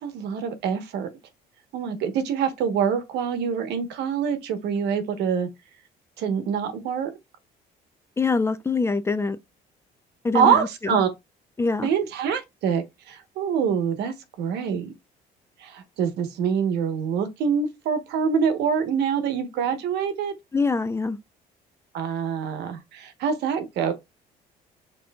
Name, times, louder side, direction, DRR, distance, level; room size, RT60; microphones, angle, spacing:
voice 1, 0.0-1.1 1.7-5.5 6.2-7.1 10.3-11.1 11.8-14.9 15.6-20.3 21.9-23.9, right 7 dB, 80° right, 1.0 m, -25 dB
voice 2, 8.2-9.4 10.2-11.0 11.6-11.9 20.5-21.2, left 4 dB, 15° left, 0.4 m, -24 dB
5.4 x 3.7 x 2.2 m
cardioid pair, 110°, 17 cm